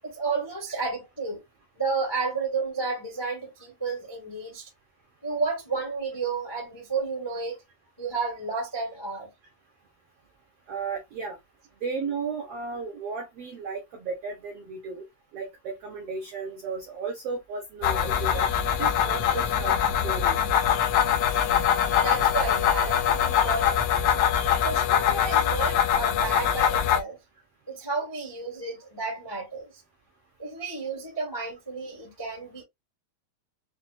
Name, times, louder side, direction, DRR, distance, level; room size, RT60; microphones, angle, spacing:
voice 1, 0.0-1.4 1.7-4.7 5.2-7.6 8.0-9.3 21.3-21.4 21.9-23.9 24.6-27.2 27.7-29.7 30.4-32.6, right 4 dB, 30° left, 0.4 m, -31 dB
voice 2, 10.7-11.4 11.8-15.0 15.3-18.5 18.8-19.8 20.0-20.4, right 5 dB, 70° right, 1.4 m, -34 dB
sound 1, 17.8-27.0, left 9 dB, 85° left, 1.4 m, -23 dB
5.9 x 2.1 x 2.5 m
omnidirectional pair, 3.8 m